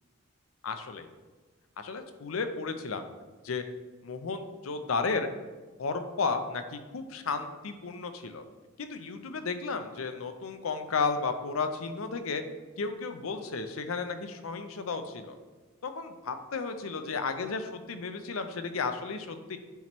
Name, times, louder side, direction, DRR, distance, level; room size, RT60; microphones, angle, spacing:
voice 1, 0.6-1.1 1.8-3.0 3.4-3.6 4.0-5.3 5.8-8.4 8.8-12.4 12.8-15.4 15.8-19.6, left 4 dB, 85° left, 8 dB, 0.6 m, -33 dB
9.1 x 3.1 x 4.3 m, 1.3 s
head